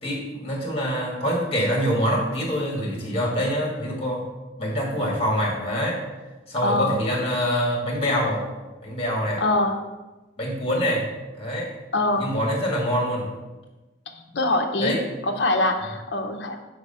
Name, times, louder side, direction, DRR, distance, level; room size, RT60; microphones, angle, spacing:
voice 1, 0.0-4.2 4.6-6.1 6.5-8.5 8.8-9.4 10.4-11.1 11.4-11.8 12.2-13.3 14.8-15.0, equal, 30° left, -2 dB, 1.9 m, -25 dB
voice 2, 6.6-7.0 9.4-9.8 11.9-12.3 14.3-15.0 15.3-16.6, left 2 dB, 65° left, 3 dB, 0.8 m, -23 dB
4.9 x 4.8 x 5.5 m, 1.1 s
head